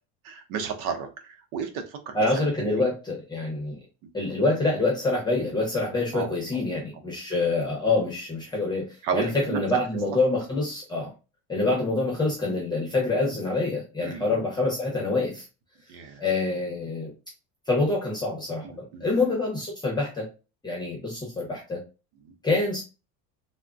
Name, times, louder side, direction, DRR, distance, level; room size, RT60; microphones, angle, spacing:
voice 1, 0.2-2.5 2.8-2.9 4.0-4.1 6.1-6.3 9.0-9.6 12.5-12.6 14.0-14.3 15.9-16.2 18.6-19.0 22.2-22.3, right 6 dB, 75° right, 6 dB, 0.7 m, -33 dB
voice 2, 2.1-3.8 4.1-11.1 11.5-15.5 16.2-17.1 17.7-18.7 19.0-20.3 20.6-21.8 22.4-22.8, left 2 dB, 15° left, -1 dB, 0.8 m, -26 dB
3.4 x 2.1 x 2.4 m, 0.30 s
cardioid pair, 140°, 33 cm